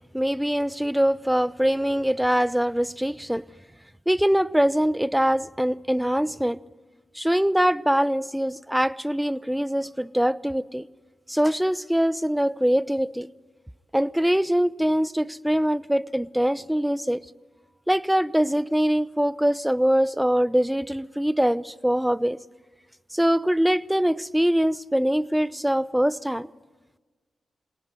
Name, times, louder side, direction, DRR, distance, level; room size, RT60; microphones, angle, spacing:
voice 1, 0.1-3.4 4.1-6.6 7.1-10.9 11.3-13.3 13.9-17.2 17.9-22.4 23.1-26.5, equal, 5° right, 0.9 m, -23 dB
27.5 x 18.5 x 9.3 m
supercardioid pair, 45°, 0 cm